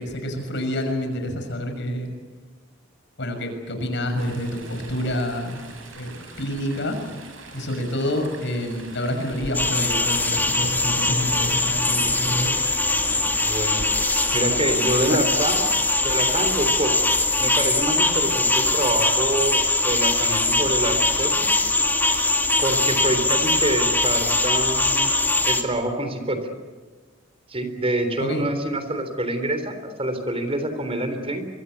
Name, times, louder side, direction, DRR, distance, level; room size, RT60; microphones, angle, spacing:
voice 1, 0.0-2.1 3.2-5.6 5.9-7.0 7.5-12.5 13.1-13.3 14.4-15.3 28.2-28.4, left 1 dB, 65° left, 5 dB, 6.2 m, -28 dB
Chatter / Stream, 4.2-16.6, right 2 dB, 80° right, 6.5 m, -42 dB
sound 1, 9.5-25.6, left 2 dB, 10° left, 2.2 m, -21 dB
voice 2, 13.4-13.9 14.3-15.6 16.0-17.1 17.4-21.5 22.6-25.1 25.5-26.4 27.5-31.5, right 1 dB, 30° right, 8 dB, 3.7 m, -26 dB
24.5 x 24.0 x 8.2 m, 1.4 s
head